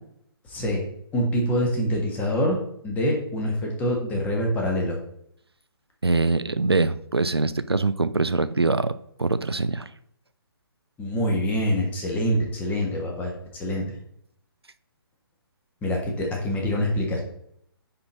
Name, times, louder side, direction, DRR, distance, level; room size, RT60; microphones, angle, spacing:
voice 1, 0.5-2.6 2.8-5.0 11.0-13.8 15.8-17.2, equal, 10° left, 0 dB, 1.6 m, -25 dB
voice 2, 6.0-8.9 9.2-9.9, right 3 dB, 85° right, 13 dB, 0.6 m, -23 dB
9.7 x 4.3 x 4.0 m, 0.72 s
figure-of-eight pair, 135°, 13 cm